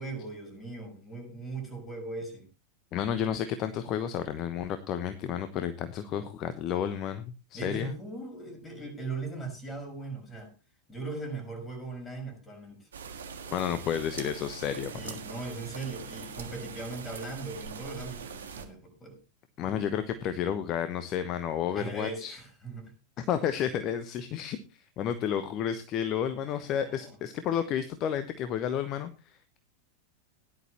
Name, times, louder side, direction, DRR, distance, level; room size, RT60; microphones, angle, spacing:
voice 1, 0.0-2.4 7.5-10.5 10.9-12.9 14.9-19.2 19.6-19.9 21.7-22.9 26.5-27.2, right 3 dB, 15° left, 5.8 m, -39 dB
voice 2, 2.9-7.9 13.5-15.0 19.6-22.4 23.2-29.6, left 9 dB, 35° left, 1.0 m, -31 dB
sound 1, 12.9-18.6, right 6 dB, 65° right, 1.7 m, -42 dB
17.5 x 11.0 x 3.0 m
figure-of-eight pair, 90°, 0 cm